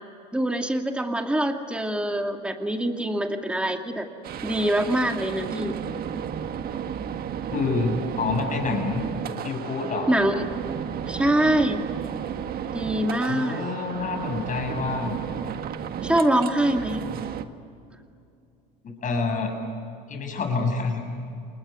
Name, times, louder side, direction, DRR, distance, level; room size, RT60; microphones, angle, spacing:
voice 1, 0.3-4.1 4.4-5.7 10.1-10.4 11.1-11.8 12.7-13.6 16.0-17.1, right 1 dB, 5° right, 4 dB, 2.4 m, -24 dB
sound 1, 4.2-17.4, right 8 dB, 45° right, 1.6 m, -33 dB
voice 2, 7.5-9.0 9.4-10.1 13.3-15.2 17.0-17.1 18.8-19.5 20.1-21.0, left 4 dB, 40° left, 4 dB, 7.7 m, -27 dB
29.5 x 20.5 x 9.5 m, 2.5 s
supercardioid pair, 100°, 21 cm